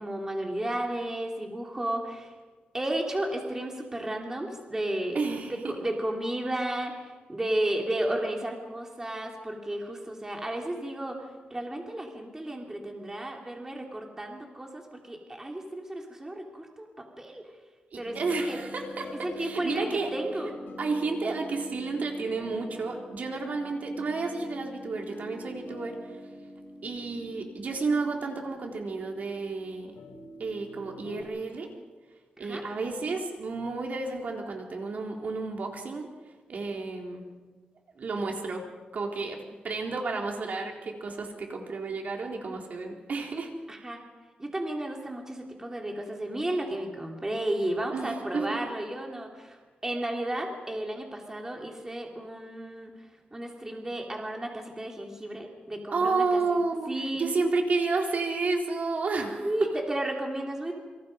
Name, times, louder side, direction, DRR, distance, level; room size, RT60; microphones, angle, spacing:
voice 1, 0.0-2.3 2.7-5.2 5.5-17.5 17.9-18.2 18.5-18.6 19.2-20.5 32.4-32.6 43.7-44.0 44.4-56.6 56.9-57.3 59.4-60.7, right 1 dB, 15° right, 1 dB, 2.9 m, -33 dB
voice 2, 5.1-5.8 17.9-20.1 20.8-26.2 26.8-29.9 30.4-31.7 32.4-36.1 36.5-37.2 38.0-38.6 38.9-43.5 47.9-48.6 55.9-59.7, right 3 dB, 55° right, 1 dB, 3.9 m, -31 dB
sound 1, 18.0-31.2, left 1 dB, 90° left, 6.8 m, -44 dB
28.5 x 25.5 x 5.3 m, 1.3 s
wide cardioid pair, 135°, 3 cm